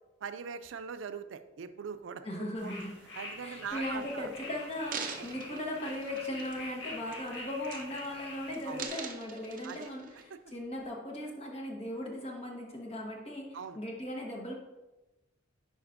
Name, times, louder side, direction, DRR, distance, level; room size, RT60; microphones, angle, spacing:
voice 1, 0.2-2.7 3.2-4.3 8.7-8.8 9.6-9.9 10.3-10.4 13.5-13.8, right 6 dB, 85° right, 11 dB, 0.4 m, -41 dB
voice 2, 2.2-2.9 3.4-14.5, left 1 dB, 30° left, 0 dB, 1.2 m, -38 dB
sound 1, 2.5-8.9, left 2 dB, 70° left, 1.7 m, -45 dB
sound 2, 4.0-4.1 4.6-6.7 7.1-7.3 7.6-8.2 8.5-10.2 10.8-10.9, right 5 dB, 45° right, 0.7 m, -43 dB
10.0 x 4.9 x 2.6 m, 1.1 s
head